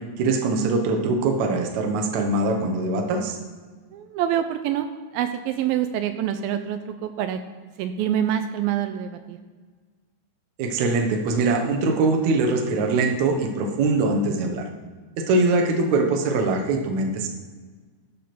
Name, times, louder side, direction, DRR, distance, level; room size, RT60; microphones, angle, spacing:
voice 1, 0.2-3.4 10.6-14.7 15.2-17.3, right 3 dB, 70° right, 3 dB, 1.9 m, -22 dB
voice 2, 3.9-4.9 5.1-7.4 7.8-9.4, right 10 dB, 85° right, 8 dB, 2.1 m, -26 dB
14.0 x 4.9 x 6.0 m, 1.5 s
omnidirectional pair, 4.7 m